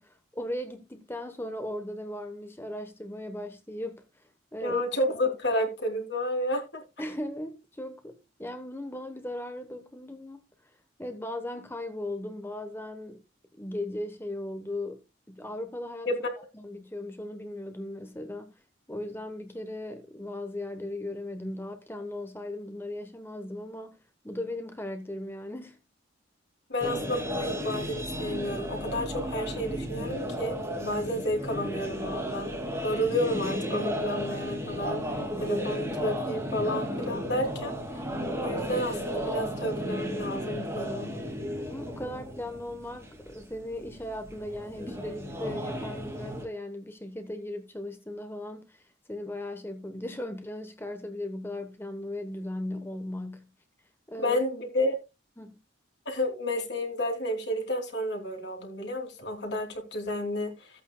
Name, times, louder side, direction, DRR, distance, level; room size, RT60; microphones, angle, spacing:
voice 1, 0.0-4.1 4.5-4.8 7.0-10.5 11.0-13.2 13.6-15.0 15.3-16.1 16.5-18.6 18.9-24.0 24.2-25.8 41.7-48.8 49.1-53.5 54.1-54.4 55.4-55.6, left 1 dB, 10° left, 1.0 m, -37 dB
voice 2, 4.6-6.8 16.1-16.2 26.7-32.5 32.8-37.7 38.4-41.1 54.2-55.0 56.0-60.7, left 1 dB, 60° left, 3.0 m, -31 dB
sound 1, 26.8-46.4, equal, 15° right, 2.2 m, -34 dB
14.5 x 8.5 x 2.2 m
head